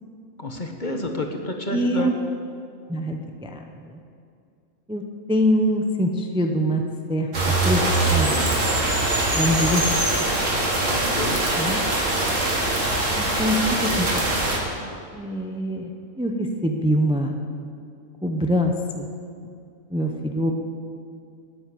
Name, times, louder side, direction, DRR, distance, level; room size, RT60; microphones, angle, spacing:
voice 1, 0.4-2.1 10.8-11.4, left 1 dB, 35° left, 3 dB, 1.3 m, -29 dB
voice 2, 1.7-2.1 2.9-3.6 3.9-4.0 4.9-5.0 5.3-6.8 7.1-7.3 7.6-7.8 8.1-8.4 9.3-9.8 11.6-11.8 13.1-13.6 13.8-14.2 15.1-15.9 16.2-17.3 18.2-18.7 19.0-19.1 19.9-20.5, equal, 5° right, 3 dB, 0.8 m, -23 dB
sound 1, 7.3-14.6, right 2 dB, 60° right, 2.6 m, -22 dB
14.0 x 8.9 x 9.4 m, 2.4 s
omnidirectional pair, 1.5 m